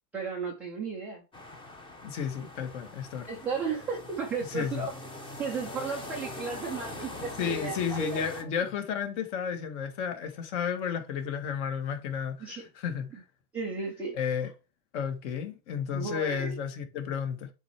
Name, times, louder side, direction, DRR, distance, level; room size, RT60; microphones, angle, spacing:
voice 1, 0.1-1.2 3.3-4.9 5.4-8.2 12.4-12.6 13.5-14.2 15.9-16.6, right 4 dB, 5° right, 0.3 m, -34 dB
sound 1, 1.3-8.4, left 2 dB, 10° left, 0.8 m, -43 dB
voice 2, 2.0-3.3 4.4-4.9 7.4-13.2 14.1-14.5 14.9-17.5, left 7 dB, 50° left, 1.6 m, -32 dB
8.1 x 3.3 x 4.5 m
hypercardioid pair, 135°, 46 cm